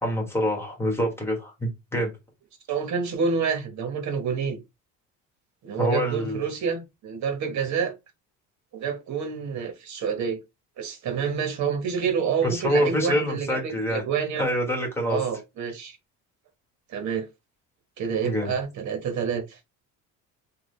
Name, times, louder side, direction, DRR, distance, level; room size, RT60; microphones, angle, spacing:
voice 1, 0.0-2.1 5.8-6.4 12.4-14.0 14.4-15.2 18.2-18.5, equal, 5° left, 1.3 m, -26 dB
voice 2, 2.7-4.6 5.6-7.9 8.7-10.4 10.8-14.5 15.1-16.0 16.9-17.3 18.0-19.6, right 6 dB, 55° right, 1.2 m, -28 dB
3.7 x 2.3 x 3.2 m
cardioid pair, 140°, 34 cm